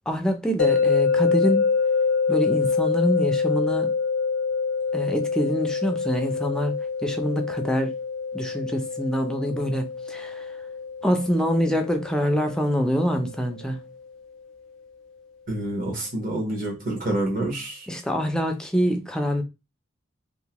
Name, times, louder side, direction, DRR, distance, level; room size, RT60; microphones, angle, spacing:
voice 1, 0.1-1.7 2.3-3.9 4.9-6.7 7.0-7.9 8.3-10.5 11.0-13.8 17.9-19.4, equal, 5° left, 0.4 m, -25 dB
sound 1, 0.6-13.7, left 5 dB, 80° left, 0.5 m, -26 dB
voice 2, 15.5-17.9, right 1 dB, 45° right, 1.1 m, -28 dB
2.7 x 2.1 x 2.9 m
head